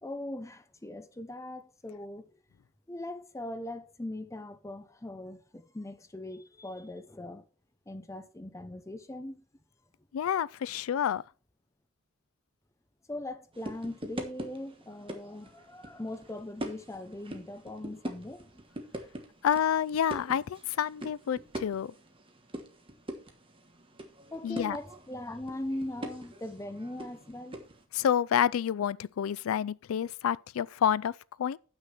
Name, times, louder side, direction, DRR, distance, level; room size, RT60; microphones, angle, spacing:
voice 1, 0.0-2.3 2.9-7.4 7.9-9.4 13.1-18.6 24.3-27.6, left 1 dB, 15° left, 0.6 m, -40 dB
voice 2, 10.1-11.2 19.4-21.9 24.4-24.8 27.9-31.6, left 9 dB, 90° left, 0.3 m, -29 dB
sound 1, 13.5-27.8, right 1 dB, 25° right, 1.2 m, -43 dB
7.6 x 6.2 x 5.7 m
head